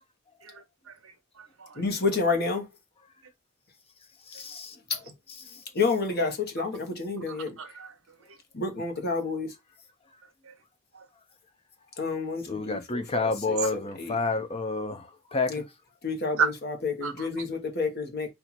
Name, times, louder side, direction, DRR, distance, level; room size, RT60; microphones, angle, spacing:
voice 1, 0.4-0.9 1.4-1.8 7.3-7.9 10.4-10.5 10.9-11.0 16.4-16.5 17.0-17.3, right 6 dB, 70° right, 0.9 m, -32 dB
voice 2, 1.8-2.7 5.7-7.6 8.5-9.5 12.0-14.2 15.5-15.6 16.0-18.3, left 4 dB, 50° left, 1.3 m, -29 dB
voice 3, 4.3-4.8 5.4-5.6 12.5-15.6, left 3 dB, 25° left, 0.7 m, -30 dB
4.5 x 2.8 x 4.1 m
head